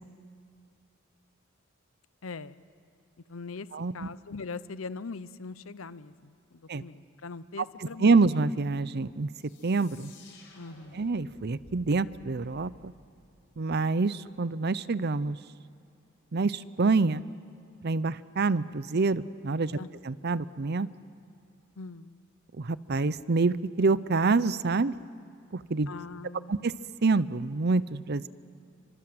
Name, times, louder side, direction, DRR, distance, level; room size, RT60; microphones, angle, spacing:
voice 1, 2.2-2.6 3.3-3.7 3.9-8.3 10.6-11.1 19.7-19.9 21.8-22.2 25.9-26.7, left 4 dB, 85° left, 16 dB, 0.8 m, -41 dB
voice 2, 3.7-4.1 6.7-6.8 8.0-9.3 9.6-10.1 10.9-12.9 13.6-15.4 16.3-17.2 17.8-19.8 20.0-20.9 22.6-24.9 25.5-25.9 26.5-26.7 27.0-28.3, right 3 dB, 55° right, 17 dB, 0.6 m, -26 dB
sound 1, 9.3-13.9, left 2 dB, 65° left, 5.5 m, -55 dB
29.5 x 25.5 x 7.9 m, 2.5 s
head